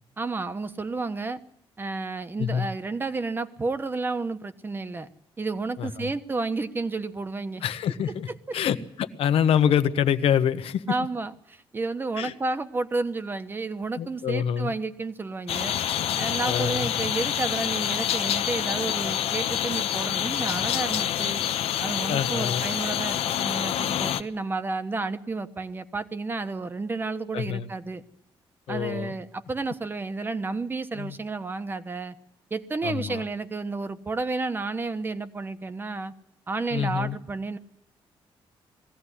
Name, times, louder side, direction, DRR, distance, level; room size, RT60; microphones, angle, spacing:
voice 1, 0.2-1.4 1.8-5.1 5.4-7.6 10.9-15.8 16.2-21.4 21.8-28.0 28.7-32.2 32.5-36.1 36.5-37.6, right 3 dB, 20° right, 10 dB, 1.2 m, -31 dB
voice 2, 5.8-6.1 7.6-8.3 8.5-10.8 12.2-12.3 14.0-14.7 16.5-16.9 22.1-22.7 27.3-27.7 28.7-29.1 30.9-31.2 32.8-33.2 36.7-37.2, left 9 dB, 75° left, 11 dB, 1.2 m, -26 dB
sound 1, 15.5-24.2, left 10 dB, 90° left, 1.0 m, -27 dB
20.5 x 16.0 x 10.0 m, 0.78 s
cardioid pair, 155°, 10 cm